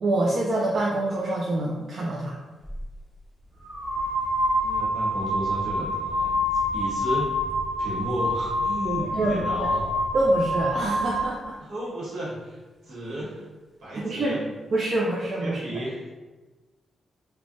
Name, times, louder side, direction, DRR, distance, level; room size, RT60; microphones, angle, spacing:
voice 1, 0.0-2.3 9.1-9.7 10.1-11.6 14.0-14.3 14.7-15.8, right 1 dB, 40° right, -4 dB, 0.3 m, -26 dB
sound 1, 2.7-2.8 3.6-11.3, left 1 dB, 5° left, 0.6 m, -27 dB
voice 2, 4.6-6.4 6.7-7.3 7.8-9.8 11.6-12.6 12.8-13.4 13.8-14.4 15.4-16.1, right 1 dB, 65° right, -8 dB, 1.3 m, -33 dB
3.2 x 2.1 x 2.5 m, 1.2 s
wide cardioid pair, 165°, 0 cm